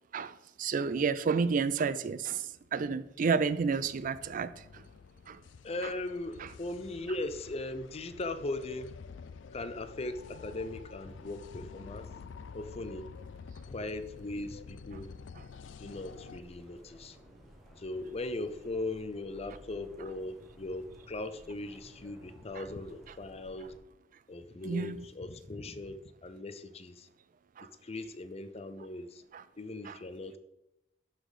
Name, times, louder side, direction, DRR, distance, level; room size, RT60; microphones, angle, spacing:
voice 1, 0.1-4.8 5.3-5.4 6.4-6.5 22.6-22.7 24.7-25.0 27.6-27.7 29.3-29.4 29.9-30.0, right 5 dB, 45° right, 15 dB, 0.4 m, -31 dB
sound 1, 2.5-16.4, left 5 dB, 85° left, 0.4 m, -49 dB
voice 2, 5.6-8.9 9.5-12.1 12.5-13.1 13.7-15.1 15.8-17.2 17.8-23.7 24.3-27.1 27.8-29.2 29.6-30.4, left 2 dB, 35° left, 11 dB, 0.6 m, -39 dB
sound 2, 15.8-23.8, equal, ahead, 1.4 m, -56 dB
11.5 x 4.1 x 4.9 m, 0.89 s
head